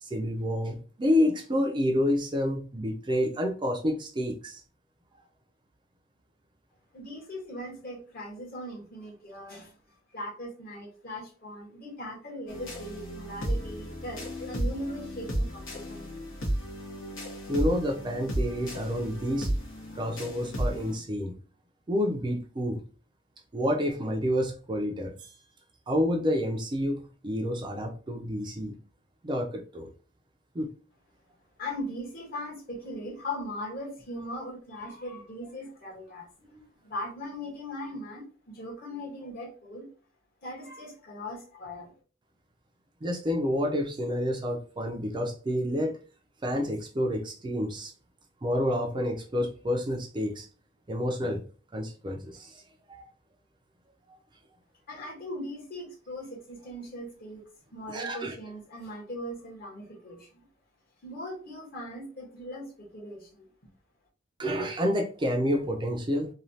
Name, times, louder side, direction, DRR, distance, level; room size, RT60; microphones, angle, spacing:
voice 1, 0.0-4.6 17.5-19.5 19.9-21.3 21.9-22.8 23.5-25.4 25.9-28.7 29.2-29.9 30.5-30.7 43.0-46.0 46.4-47.9 48.4-50.5 50.9-51.4 51.7-52.6 52.9-53.1 57.9-58.4 64.4-66.3, equal, 25° right, 1 dB, 0.4 m, -29 dB
voice 2, 6.9-9.8 10.1-16.0 31.6-39.9 40.4-41.9 54.9-57.4 57.7-60.5 61.0-63.5, left 1 dB, 50° left, -2 dB, 1.2 m, -39 dB
sound 1, 12.5-21.0, right 1 dB, 80° left, 1.1 m, -33 dB
3.1 x 2.3 x 2.7 m, 0.38 s
head